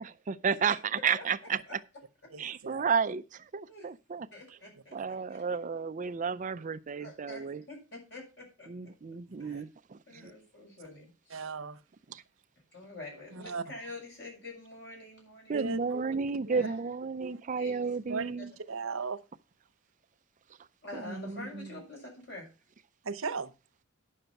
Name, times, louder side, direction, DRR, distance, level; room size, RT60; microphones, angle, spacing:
voice 1, 0.0-1.6 2.4-4.3 4.9-7.6 8.7-10.0 12.1-12.2 15.5-18.5 20.9-21.7, right 5 dB, 40° right, 0.4 m, -32 dB
voice 2, 2.3-2.9 5.0-5.1 9.4-9.6 10.2-10.3 11.3-11.8 13.3-13.6 15.5-16.0 17.2-17.4 18.1-18.3 18.7-19.2 23.0-23.5, right 4 dB, 90° right, 0.8 m, -37 dB
voice 3, 4.3-5.4 7.0-8.9 9.4-9.6 10.1-11.4 12.7-15.7 16.5-16.8 17.6-17.9 20.8-22.5, left 2 dB, 60° left, 6.8 m, -46 dB
10.0 x 6.5 x 5.8 m
head